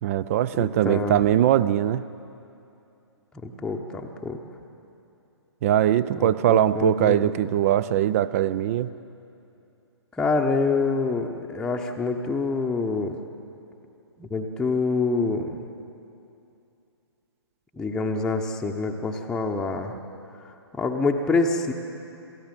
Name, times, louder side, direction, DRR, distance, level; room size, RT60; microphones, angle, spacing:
voice 1, 0.0-2.0 5.6-8.9, right 11 dB, 30° right, 17 dB, 0.5 m, -21 dB
voice 2, 0.6-1.2 3.4-4.4 6.2-7.3 10.2-13.2 14.2-15.6 17.8-19.9 20.8-21.7, left 3 dB, 5° left, 0 dB, 0.9 m, -26 dB
28.0 x 14.0 x 7.5 m, 2.7 s
figure-of-eight pair, 125°, 15 cm